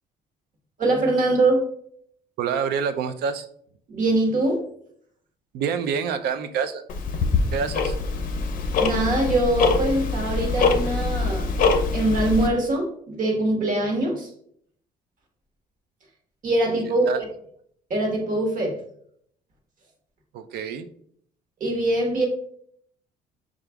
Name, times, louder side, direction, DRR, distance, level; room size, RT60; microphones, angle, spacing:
voice 1, 0.8-1.6 3.9-4.6 8.8-11.5 11.9-14.3 16.4-17.1 17.9-18.8 21.6-22.3, right 2 dB, 50° right, 2 dB, 1.2 m, -23 dB
voice 2, 2.4-3.5 5.5-6.8 7.5-8.0 16.9-17.2 20.3-20.9, right 6 dB, 70° right, 10 dB, 0.5 m, -27 dB
Tick-tock, 6.9-12.5, left 4 dB, 55° left, 0.5 m, -23 dB
4.9 x 2.4 x 3.3 m, 0.65 s
cardioid pair, 110°, 17 cm